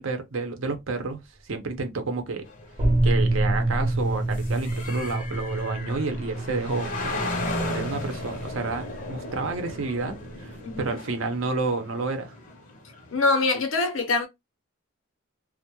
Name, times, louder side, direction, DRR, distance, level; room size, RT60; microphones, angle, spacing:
voice 1, 0.0-2.4 3.0-7.2 7.7-12.3, right 3 dB, 80° right, 0.7 m, -30 dB
sound 1, 2.5-13.1, left 2 dB, 40° left, 0.6 m, -36 dB
sound 2, 2.8-10.8, right 1 dB, 30° right, 0.4 m, -28 dB
voice 2, 10.6-11.0 13.1-14.3, left 3 dB, 80° left, 0.7 m, -24 dB
2.2 x 2.1 x 2.8 m
head